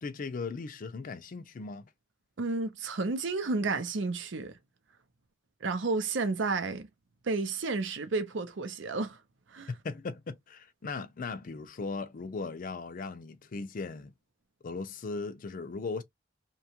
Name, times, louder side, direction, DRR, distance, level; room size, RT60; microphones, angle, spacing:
voice 1, 0.0-1.9 9.7-14.1 14.6-16.0, left 4 dB, 45° left, 0.4 m, -38 dB
voice 2, 2.4-4.6 5.6-6.9 7.2-9.2 9.5-9.7, right 3 dB, 65° right, 0.6 m, -31 dB
2.8 x 2.3 x 2.8 m
head